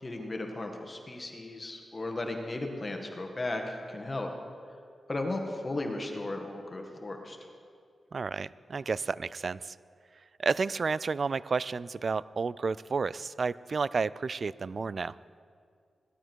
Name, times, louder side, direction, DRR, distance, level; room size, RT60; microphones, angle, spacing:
voice 1, 0.0-4.3 5.1-7.4, left 2 dB, 30° left, 3 dB, 1.7 m, -35 dB
voice 2, 8.1-9.7 10.4-15.1, right 4 dB, 55° right, 19 dB, 0.3 m, -31 dB
16.5 x 12.5 x 4.6 m, 2.2 s
cardioid pair, 75°, 0 cm